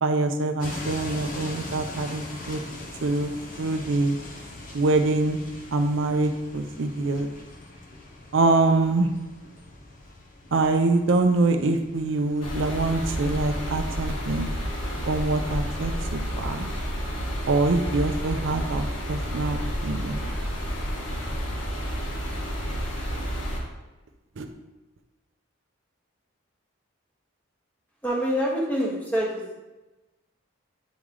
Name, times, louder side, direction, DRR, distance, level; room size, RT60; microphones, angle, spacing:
voice 1, 0.0-2.6 3.0-3.3 3.6-4.2 4.7-5.4 5.7-7.3 8.3-9.1 10.5-14.5 15.1-16.7 17.5-20.2 24.4-24.5, right 2 dB, 65° right, 6 dB, 0.4 m, -24 dB
sound 1, 0.6-16.3, left 2 dB, 40° left, 0.6 m, -42 dB
sound 2, 12.4-23.6, equal, 75° left, 1.4 m, -30 dB
voice 2, 28.0-29.5, equal, 5° left, -4 dB, 1.1 m, -26 dB
8.1 x 3.2 x 3.7 m, 1.1 s
head